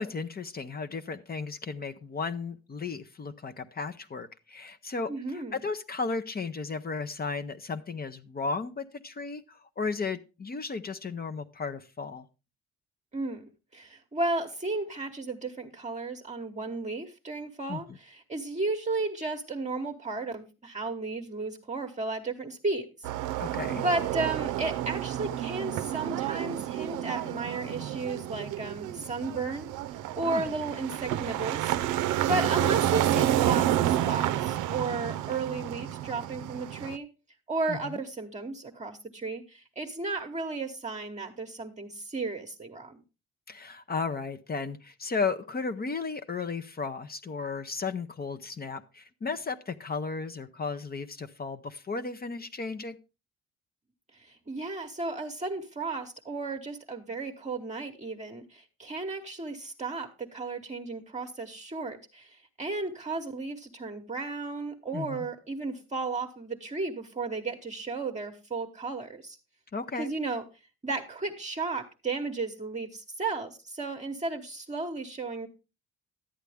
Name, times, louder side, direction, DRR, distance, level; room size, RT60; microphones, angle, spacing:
voice 1, 0.0-12.3 17.7-18.0 23.4-23.8 30.2-30.5 32.3-32.4 37.7-38.0 43.5-53.0 64.9-65.3 69.7-70.1, left 4 dB, 30° left, 9 dB, 0.7 m, -34 dB
voice 2, 5.1-5.6 13.1-23.1 23.8-29.7 30.1-31.8 32.3-37.1 37.5-43.0 54.1-69.4 69.9-70.5 70.8-75.5, right 3 dB, 25° right, 2 dB, 1.0 m, -34 dB
sound 1, 23.0-37.0, right 12 dB, 90° right, 0.5 m, -30 dB
11.5 x 8.1 x 3.4 m, 0.29 s
cardioid pair, 90°, 30 cm